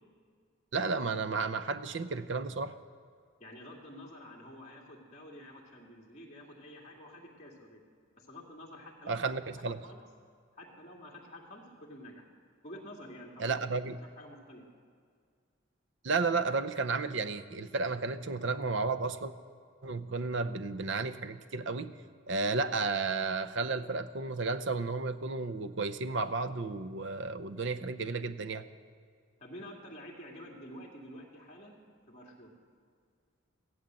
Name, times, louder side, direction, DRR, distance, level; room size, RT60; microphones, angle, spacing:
voice 1, 0.7-2.8 9.1-9.9 13.4-14.0 16.0-19.3 19.8-21.9 22.3-28.6, right 4 dB, 65° right, 12 dB, 0.6 m, -33 dB
voice 2, 3.4-7.8 8.2-9.3 9.8-10.0 10.6-12.2 12.6-13.7 14.2-14.6 29.4-31.8 32.1-32.5, left 1 dB, 35° left, -2 dB, 2.5 m, -49 dB
15.5 x 12.0 x 7.6 m, 2.1 s
head